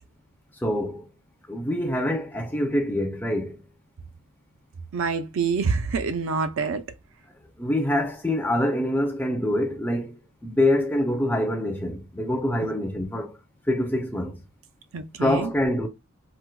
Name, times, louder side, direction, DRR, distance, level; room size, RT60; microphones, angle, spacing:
voice 1, 0.5-1.1 1.5-3.6 7.6-13.4 13.7-14.4 15.2-15.9, left 1 dB, 10° left, 0.4 m, -25 dB
voice 2, 4.9-6.8 14.9-15.5, right 5 dB, 65° right, 0.4 m, -26 dB
4.4 x 2.1 x 2.2 m
head